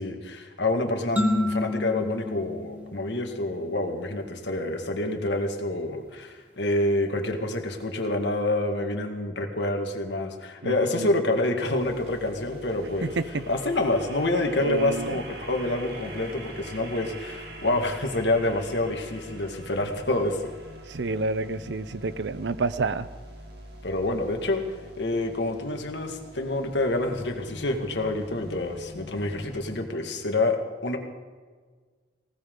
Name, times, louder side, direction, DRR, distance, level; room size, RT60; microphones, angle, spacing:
voice 1, 0.0-13.1 13.5-20.5 23.8-24.6 25.0-31.0, left 2 dB, 85° left, 4 dB, 2.0 m, -27 dB
sound 1, 1.2-3.8, left 2 dB, 10° right, 1.9 m, -30 dB
voice 2, 10.6-11.1 13.0-13.4 14.6-15.2 20.9-23.1, right 3 dB, 85° right, 15 dB, 0.7 m, -29 dB
sound 2, 11.6-29.8, right 1 dB, 65° right, 2.6 m, -44 dB
19.5 x 18.5 x 3.9 m, 1.5 s
head